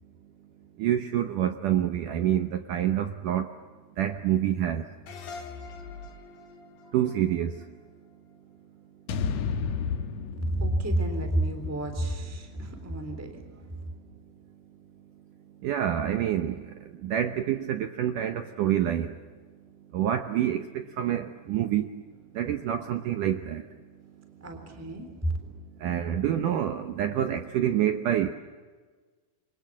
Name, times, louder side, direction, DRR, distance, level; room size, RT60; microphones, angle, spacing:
voice 1, 0.8-3.5 4.0-4.9 6.9-7.7 15.6-19.2 19.9-22.0 22.3-23.6 25.8-28.3, right 11 dB, 70° right, 8 dB, 2.0 m, -27 dB
sound 1, 5.1-8.4, left 4 dB, 60° left, 5.4 m, -44 dB
sound 2, 9.1-13.3, left 6 dB, 80° left, 1.6 m, -34 dB
voice 2, 10.5-13.4 24.4-25.3, right 1 dB, 5° right, 6 dB, 2.9 m, -30 dB
28.5 x 25.0 x 7.6 m, 1.4 s
omnidirectional pair, 4.8 m